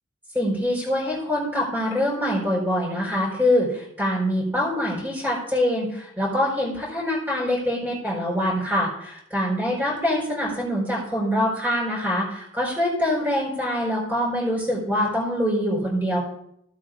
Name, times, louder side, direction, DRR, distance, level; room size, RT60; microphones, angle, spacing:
voice 1, 0.3-16.2, left 1 dB, 10° right, -6 dB, 4.7 m, -24 dB
17.0 x 8.4 x 2.6 m, 0.74 s
head